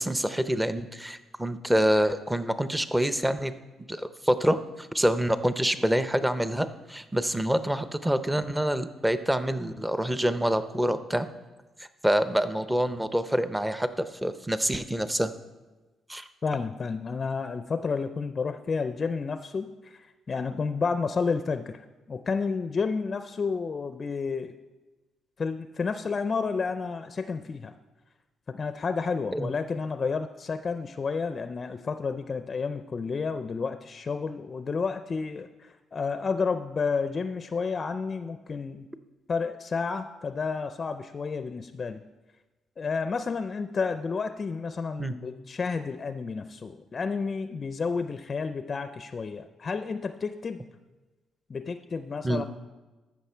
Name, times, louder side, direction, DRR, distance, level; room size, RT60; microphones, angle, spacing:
voice 1, 0.0-3.5 3.9-11.3 12.0-15.3 16.1-16.3 29.3-29.5 45.0-45.1 52.2-52.5, equal, 10° right, 11 dB, 0.6 m, -26 dB
voice 2, 16.4-24.5 25.4-27.7 28.5-38.9 39.3-42.0 42.8-50.6 51.5-52.4, left 5 dB, 40° left, 10 dB, 0.4 m, -31 dB
14.0 x 6.1 x 4.4 m, 1.2 s
cardioid pair, 90°, 0 cm